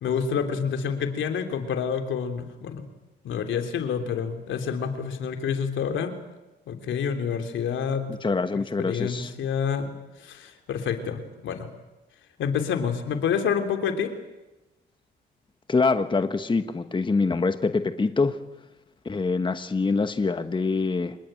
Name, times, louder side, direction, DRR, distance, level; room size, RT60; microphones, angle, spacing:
voice 1, 0.0-2.9 3.2-6.1 6.7-8.0 8.8-9.9 10.2-11.7 12.4-14.1, left 7 dB, 75° left, 7 dB, 3.1 m, -28 dB
voice 2, 8.1-9.3 15.7-18.4 19.0-21.2, left 4 dB, 25° left, 9 dB, 1.3 m, -25 dB
26.0 x 20.5 x 9.0 m, 1.0 s
cardioid pair, 90°, 20 cm